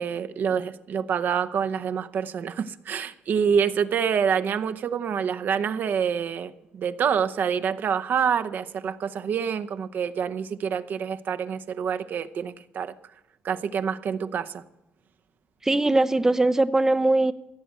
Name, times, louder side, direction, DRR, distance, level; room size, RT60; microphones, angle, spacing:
voice 1, 0.0-12.9 13.4-14.6, right 7 dB, 60° right, 0.8 m, -27 dB
voice 2, 15.6-17.3, right 2 dB, 15° right, 0.5 m, -21 dB
16.0 x 7.8 x 8.0 m
cardioid pair, 90°, 4 cm